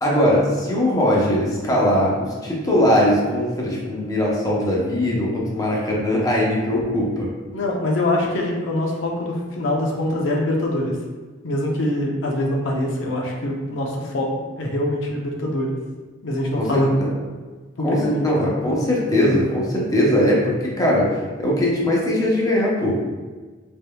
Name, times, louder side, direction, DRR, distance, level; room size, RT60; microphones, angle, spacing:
voice 1, 0.0-7.3 16.6-17.1 17.8-21.1 21.4-23.0, left 1 dB, 20° left, -4 dB, 0.8 m, -20 dB
voice 2, 7.5-10.9 11.4-14.3 14.6-15.7 16.2-17.0 17.8-18.4, left 1 dB, 80° left, -1 dB, 0.6 m, -24 dB
4.1 x 3.5 x 2.2 m, 1.4 s
head